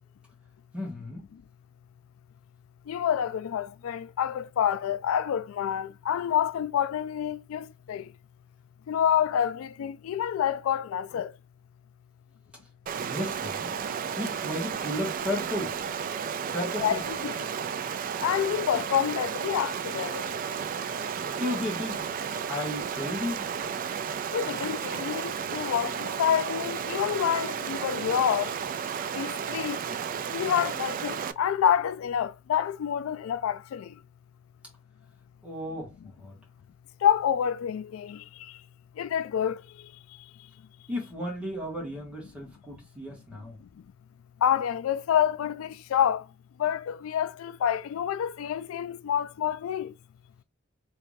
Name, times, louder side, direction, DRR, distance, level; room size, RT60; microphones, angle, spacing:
voice 1, 0.7-1.3 13.0-13.8 14.2-15.8 16.5-17.0 20.9-21.0 21.3-22.0 22.5-23.5 35.4-36.4 40.9-43.6, left 1 dB, 5° right, 1.6 m, -34 dB
voice 2, 2.9-8.0 8.9-11.3 16.8-17.4 18.2-20.3 24.3-28.5 29.2-29.8 30.3-33.9 37.0-38.2 39.0-39.6 44.4-46.2 46.6-49.9, left 9 dB, 85° left, 0.3 m, -28 dB
Stream, 12.9-31.3, right 7 dB, 40° right, 0.3 m, -33 dB
3.3 x 3.2 x 2.6 m
head